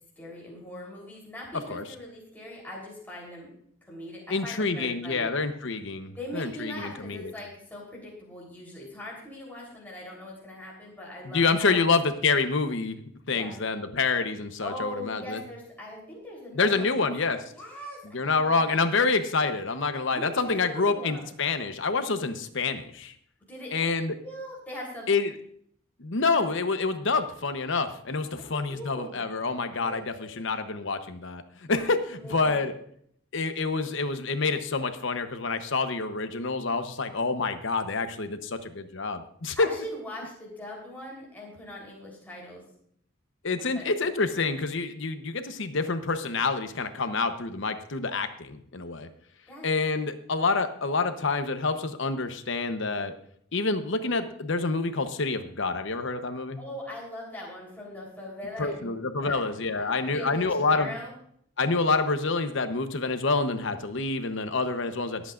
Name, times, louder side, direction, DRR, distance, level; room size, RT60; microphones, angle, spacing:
voice 1, 0.2-3.5 3.8-5.3 6.1-11.9 13.3-13.6 14.6-17.1 17.5-19.0 20.1-21.3 23.5-23.7 24.2-25.1 28.4-29.3 29.8-30.4 31.7-32.6 39.6-42.6 43.6-43.9 49.5-49.6 56.6-59.4 59.7-61.1, left 1 dB, 10° left, -4 dB, 3.6 m, -41 dB
voice 2, 4.3-7.3 11.2-13.0 13.3-15.4 16.5-17.4 18.1-23.1 23.7-24.1 25.1-25.3 26.0-32.8 33.3-39.7 43.4-49.1 49.6-53.1 53.5-56.6 58.6-60.9 61.6-65.3, left 4 dB, 65° left, 9 dB, 0.9 m, -27 dB
22.5 x 8.3 x 2.5 m, 0.66 s
head